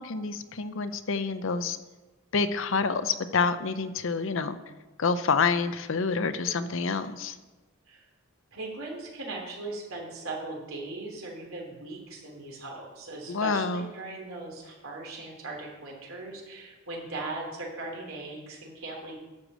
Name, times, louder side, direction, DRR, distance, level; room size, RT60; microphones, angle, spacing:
voice 1, 0.0-1.8 2.3-4.6 5.0-7.4 13.3-13.9, left 5 dB, 65° left, 12 dB, 0.6 m, -28 dB
voice 2, 8.5-19.2, right 2 dB, 85° right, -1 dB, 3.3 m, -39 dB
11.5 x 5.1 x 7.5 m, 1.2 s
head